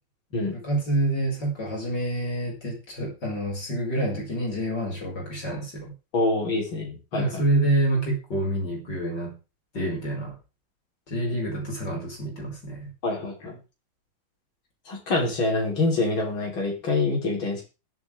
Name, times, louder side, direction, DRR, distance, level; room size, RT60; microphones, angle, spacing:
voice 1, 0.5-5.9 7.1-9.4 9.7-10.4 11.1-12.9, right 1 dB, 55° left, -1 dB, 5.9 m, -27 dB
voice 2, 6.1-7.4 13.0-13.6 14.9-17.6, left 2 dB, 75° left, -1 dB, 4.5 m, -26 dB
20.5 x 9.1 x 3.5 m, 0.30 s
omnidirectional pair, 2.2 m